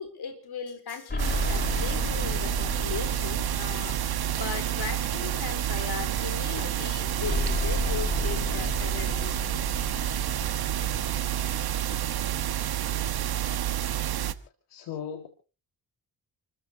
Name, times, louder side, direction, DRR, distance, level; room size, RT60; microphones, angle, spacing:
voice 1, 0.0-4.0 4.3-9.3 10.4-10.6 11.9-12.0, left 6 dB, 70° left, 3.9 m, -37 dB
sound 1, 1.1-5.6 7.2-12.0, left 1 dB, 25° left, 1.9 m, -33 dB
sound 2, 1.2-14.3, right 11 dB, 65° right, 1.3 m, -29 dB
voice 2, 14.7-15.3, left 8 dB, 85° left, 1.9 m, -36 dB
29.5 x 14.5 x 2.8 m
supercardioid pair, 55°, 40 cm